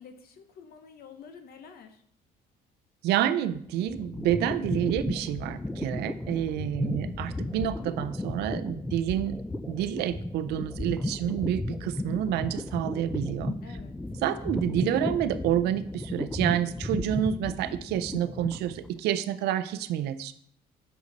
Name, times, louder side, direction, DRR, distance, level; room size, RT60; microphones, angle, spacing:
voice 1, 0.0-2.0 6.8-7.3 13.6-14.0, left 7 dB, 65° left, 8 dB, 0.9 m, -48 dB
voice 2, 3.0-13.5 14.2-20.3, right 11 dB, 80° right, 12 dB, 0.5 m, -29 dB
sound 1, 3.5-19.0, left 1 dB, 5° left, 0.3 m, -34 dB
6.4 x 5.1 x 4.0 m, 0.63 s
cardioid pair, 110°, 17 cm